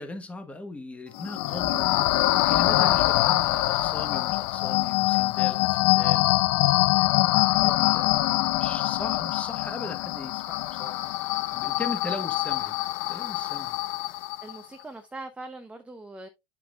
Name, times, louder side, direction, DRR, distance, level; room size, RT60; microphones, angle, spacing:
voice 1, 0.0-2.2 2.5-6.3 6.9-11.0 11.2-12.8 13.1-13.8, left 2 dB, 10° left, 1.2 m, -38 dB
sound 1, 1.1-14.6, left 16 dB, 80° left, 0.7 m, -24 dB
voice 2, 14.4-16.3, right 2 dB, 10° right, 0.9 m, -41 dB
8.3 x 5.9 x 2.5 m
supercardioid pair, 130°, 13 cm